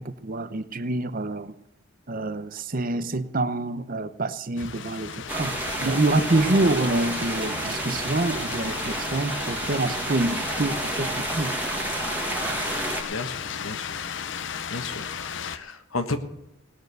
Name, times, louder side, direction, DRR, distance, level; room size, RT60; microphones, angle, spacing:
voice 1, 0.0-1.5 2.1-5.5 5.8-11.5, right 2 dB, 45° right, 12 dB, 0.8 m, -26 dB
sound 1, 4.6-15.6, left 7 dB, 60° left, 0.7 m, -35 dB
sound 2, 5.3-13.0, right 2 dB, 10° right, 1.8 m, -30 dB
voice 2, 12.7-14.4 14.7-16.2, left 3 dB, 90° left, 8 dB, 1.4 m, -34 dB
18.5 x 6.6 x 6.8 m, 0.95 s
head